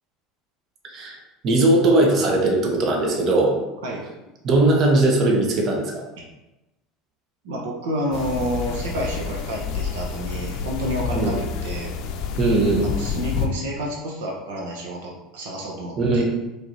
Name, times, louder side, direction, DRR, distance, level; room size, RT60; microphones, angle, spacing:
voice 1, 1.4-3.5 4.4-6.0 11.2-11.4 12.4-12.9 16.0-16.2, right 2 dB, 45° right, 0 dB, 0.9 m, -19 dB
voice 2, 7.4-11.9 12.8-16.2, equal, 80° right, -2 dB, 0.8 m, -29 dB
sound 1, 8.1-13.5, left 6 dB, 60° left, 0.5 m, -29 dB
4.5 x 3.3 x 2.7 m, 1.0 s
hypercardioid pair, 90°, 0 cm